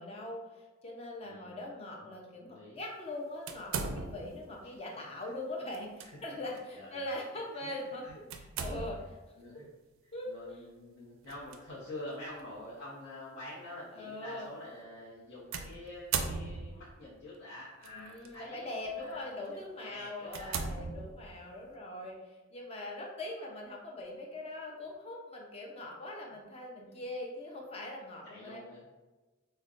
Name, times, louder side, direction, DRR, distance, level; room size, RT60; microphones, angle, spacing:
voice 1, 0.0-8.0 8.6-9.0 10.1-10.3 13.9-14.5 17.9-28.6, left 1 dB, 30° left, -1 dB, 0.6 m, -41 dB
voice 2, 1.2-1.6 2.0-2.2 2.4-2.8 4.6-5.3 6.0-6.2 6.5-7.0 7.5-8.8 9.4-9.7 10.0-20.7 26.3-26.5 26.9-27.0 28.2-28.9, left 1 dB, 60° left, -9 dB, 0.9 m, -48 dB
sound 1, 3.5-4.5 5.7-6.1 6.6-6.7 8.3-9.2 11.3-11.6 12.4-12.5 15.5-16.9 17.8-18.3 18.9-19.1 19.6-19.7 20.3-21.5, right 5 dB, 80° right, 0.4 m, -37 dB
5.1 x 2.1 x 2.5 m, 1.2 s
head